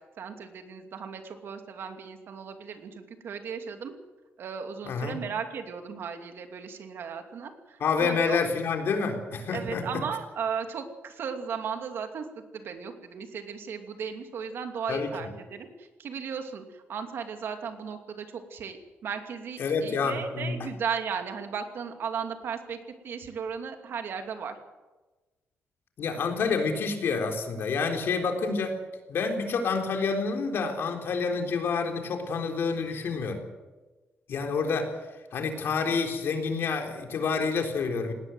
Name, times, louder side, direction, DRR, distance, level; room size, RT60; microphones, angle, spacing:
voice 1, 0.2-3.9 4.4-8.4 9.5-22.8 23.0-24.6, right 6 dB, 65° right, 6 dB, 2.7 m, -36 dB
voice 2, 4.8-5.2 7.8-9.8 14.9-15.1 19.6-20.6 26.0-28.8 29.1-33.4 34.3-34.9 35.3-38.1, left 5 dB, 65° left, 4 dB, 3.8 m, -28 dB
19.0 x 18.5 x 7.9 m, 1.2 s
wide cardioid pair, 150°, 4 cm